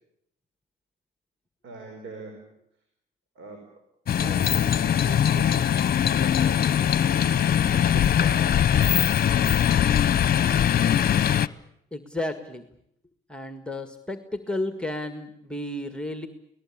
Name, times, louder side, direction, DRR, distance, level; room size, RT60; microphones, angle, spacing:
voice 1, 1.6-2.5 3.4-3.7 4.2-5.8 6.1-9.5, right 3 dB, 80° right, 4 dB, 5.2 m, -42 dB
sound 1, 4.1-11.5, left 9 dB, 50° left, 0.9 m, -21 dB
voice 2, 11.9-12.7 13.3-16.3, left 1 dB, 5° left, 8 dB, 1.8 m, -32 dB
28.5 x 19.0 x 8.7 m, 0.74 s
cardioid pair, 90°, 20 cm